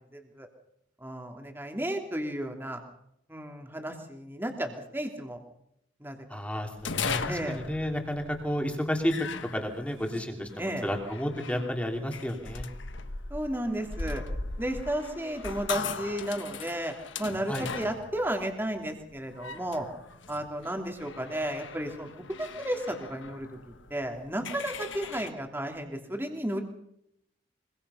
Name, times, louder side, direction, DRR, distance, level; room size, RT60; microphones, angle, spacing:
voice 1, 0.1-0.5 1.0-2.8 3.3-5.4 6.0-6.2 7.3-7.6 10.6-10.9 13.3-14.2 14.6-19.9 20.3-26.6, right 1 dB, 10° right, 3 dB, 2.9 m, -33 dB
voice 2, 6.3-9.1 9.5-10.5 10.8-12.7 17.5-17.7, equal, 5° left, 3 dB, 3.2 m, -31 dB
sound 1, 6.8-25.3, left 4 dB, 75° left, 1.4 m, -39 dB
24.5 x 23.0 x 5.7 m, 0.78 s
head